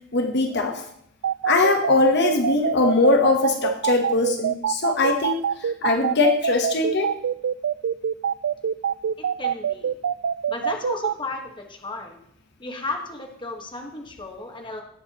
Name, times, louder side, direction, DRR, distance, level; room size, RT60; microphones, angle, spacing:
voice 1, 0.1-0.8 1.4-7.1, left 3 dB, 55° left, 5 dB, 1.1 m, -21 dB
sound 1, 1.2-11.1, right 8 dB, 70° right, 0.3 m, -24 dB
voice 2, 9.2-10.0 10.5-12.2 12.6-14.8, left 2 dB, 25° left, 2 dB, 1.4 m, -34 dB
18.0 x 7.9 x 3.0 m, 0.71 s
head